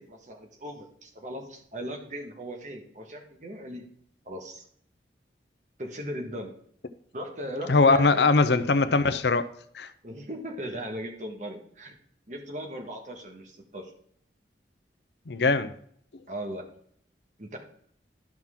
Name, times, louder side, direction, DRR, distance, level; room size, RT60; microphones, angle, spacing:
voice 1, 0.0-3.8 4.2-4.6 5.8-6.5 7.1-8.5 10.0-12.0 12.3-13.9 16.3-16.7 17.4-17.6, equal, 45° right, 3 dB, 1.6 m, -38 dB
voice 2, 7.7-9.5 9.7-9.9 15.3-15.7, left 3 dB, 75° left, 12 dB, 0.7 m, -21 dB
12.0 x 6.0 x 3.7 m, 0.64 s
head